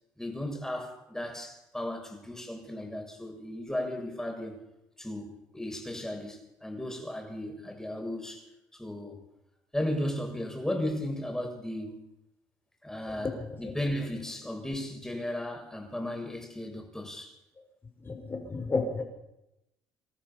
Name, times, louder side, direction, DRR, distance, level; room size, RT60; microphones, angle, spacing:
voice 1, 0.2-4.6 5.0-9.2 9.7-12.1 12.8-17.4, left 1 dB, 5° left, 7.0 m, -35 dB
voice 2, 18.0-19.0, left 3 dB, 30° left, 6.7 m, -31 dB
27.0 x 13.5 x 7.3 m
supercardioid pair, 85°, 8 cm